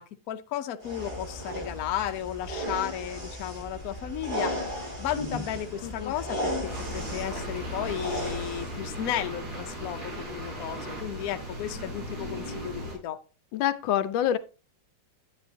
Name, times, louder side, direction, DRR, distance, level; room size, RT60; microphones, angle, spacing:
voice 1, 0.0-4.6 5.0-6.5 6.9-13.2, left 11 dB, 65° left, 8 dB, 1.0 m, -34 dB
sound 1, 0.8-8.8, equal, 20° right, 3.6 m, -35 dB
voice 2, 5.8-6.1 13.5-14.4, left 11 dB, 90° left, 13 dB, 1.4 m, -26 dB
sound 2, 6.6-12.9, equal, 85° right, 4.5 m, -37 dB
9.5 x 9.5 x 2.8 m, 0.33 s
omnidirectional pair, 2.0 m